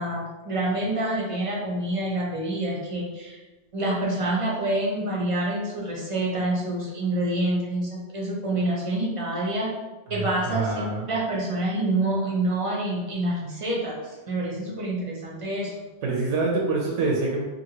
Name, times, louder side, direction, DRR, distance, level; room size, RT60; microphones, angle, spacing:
voice 1, 0.0-3.4 3.7-9.7 10.1-10.8 11.1-15.8, right 1 dB, 35° right, -3 dB, 0.6 m, -27 dB
voice 2, 10.1-11.1 16.0-17.4, right 3 dB, 85° right, -2 dB, 0.9 m, -26 dB
2.8 x 2.5 x 2.8 m, 1.2 s
omnidirectional pair, 1.2 m